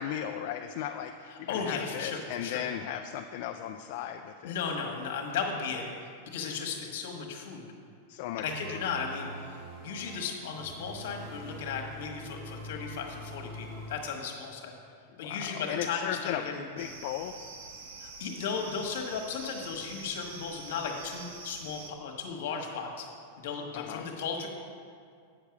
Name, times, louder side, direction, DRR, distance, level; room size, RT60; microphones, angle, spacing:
voice 1, 0.0-4.5 8.1-8.4 8.7-8.9 15.2-16.4 16.8-17.3 23.7-24.1, left 10 dB, 40° left, 5 dB, 0.3 m, -36 dB
voice 2, 1.3-2.6 4.4-7.7 8.4-14.7 15.2-16.6 18.0-23.1 23.4-24.5, left 5 dB, 55° left, 2 dB, 1.4 m, -35 dB
sound 1, 8.4-14.0, right 1 dB, 30° right, 0.9 m, -44 dB
sound 2, 16.8-21.9, right 4 dB, 60° right, 1.0 m, -46 dB
8.1 x 6.6 x 5.9 m, 2.2 s
supercardioid pair, 180°, 0 cm